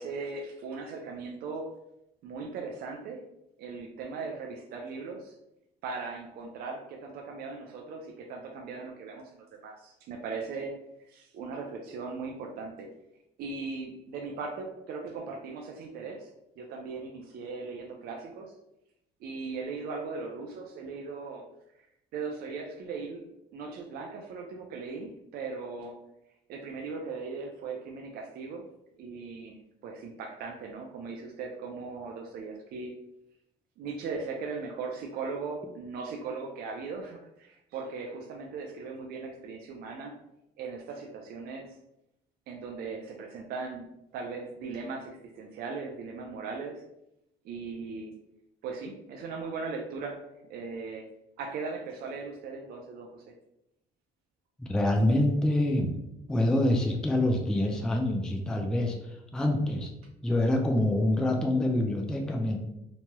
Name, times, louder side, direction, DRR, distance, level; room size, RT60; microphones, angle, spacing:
voice 1, 0.0-1.7 2.2-3.2 3.6-5.3 5.8-10.7 11.1-12.9 13.4-16.3 16.6-18.5 19.2-21.4 22.1-23.2 23.5-26.0 26.5-28.6 29.0-29.6 29.8-32.9 33.8-40.1 40.6-41.8 42.5-43.9 44.1-46.7 47.4-48.1 48.6-51.1 51.4-53.2, right 4 dB, 65° right, 1 dB, 0.4 m, -38 dB
voice 2, 54.6-55.9 56.3-59.0 59.3-59.9 60.2-62.6, left 1 dB, 5° left, 1 dB, 0.3 m, -26 dB
3.0 x 2.2 x 2.9 m, 0.84 s
cardioid pair, 110°, 17 cm